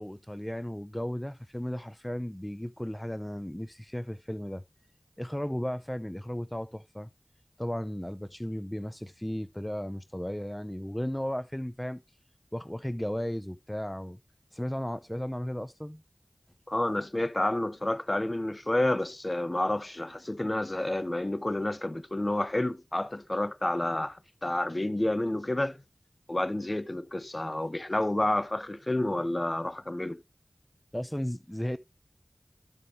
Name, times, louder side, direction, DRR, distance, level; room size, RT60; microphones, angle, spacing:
voice 1, 0.0-4.6 5.2-7.1 7.6-12.0 12.5-14.2 14.5-16.0 30.9-31.8, equal, 10° left, 0.5 m, -35 dB
voice 2, 16.7-25.8 26.3-30.2, left 1 dB, 35° left, 0.8 m, -29 dB
13.0 x 5.1 x 3.2 m
wide cardioid pair, 40°, 0 cm